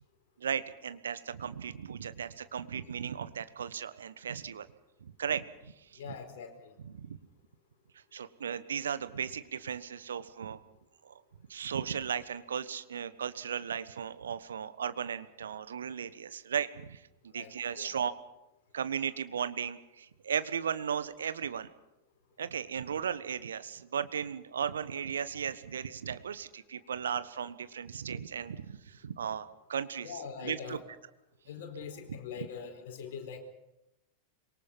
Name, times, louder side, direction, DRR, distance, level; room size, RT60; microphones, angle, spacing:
voice 1, 0.4-4.7 5.0-6.1 6.8-7.2 8.1-10.6 11.0-11.1 11.5-18.1 18.7-21.7 22.4-30.8 32.4-32.5, right 8 dB, 65° right, 13 dB, 1.2 m, -36 dB
voice 2, 6.0-6.8 17.3-18.0 30.0-30.8 31.5-33.4, left 7 dB, 55° left, 4 dB, 4.5 m, -43 dB
25.5 x 23.0 x 5.6 m, 0.89 s
figure-of-eight pair, 90°, 0 cm